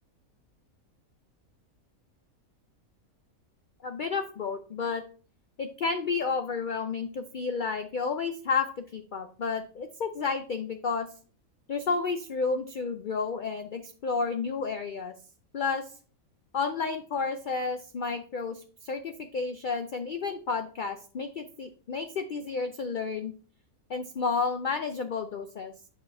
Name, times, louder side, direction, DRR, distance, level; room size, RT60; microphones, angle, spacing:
voice 1, 3.8-5.0 5.6-11.1 11.7-15.1 15.5-15.9 16.5-23.3 23.9-25.7, left 4 dB, 80° left, 7 dB, 0.4 m, -31 dB
8.3 x 4.9 x 3.5 m, 0.40 s
omnidirectional pair, 1.5 m